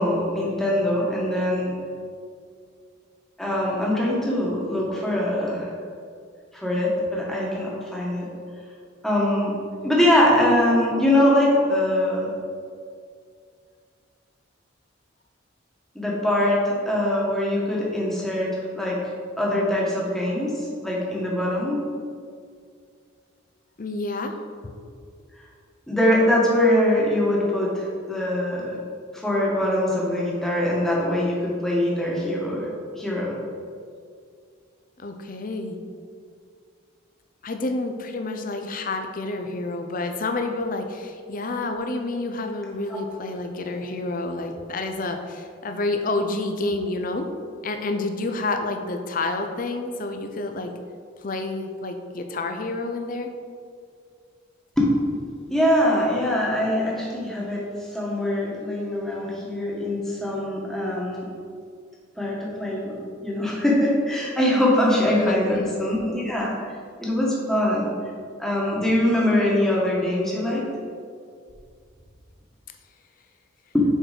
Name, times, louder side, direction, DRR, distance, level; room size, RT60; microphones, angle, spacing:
voice 1, 0.0-1.7 3.4-5.7 6.5-8.3 9.0-9.5 9.8-12.3 15.9-18.5 18.7-19.0 19.4-21.8 25.9-28.8 29.1-32.7 33.0-33.3 42.9-43.0 54.8-54.9 55.5-57.6 57.9-61.2 62.2-63.0 63.2-66.7 67.0-67.9 68.4-70.6 73.7-73.8, left 1 dB, ahead, -5 dB, 1.3 m, -22 dB
voice 2, 23.8-24.3 35.0-35.8 37.4-47.3 47.6-50.7 51.2-53.3 65.1-65.7, left 2 dB, 45° left, 6 dB, 0.5 m, -29 dB
6.5 x 4.5 x 5.0 m, 2.2 s
head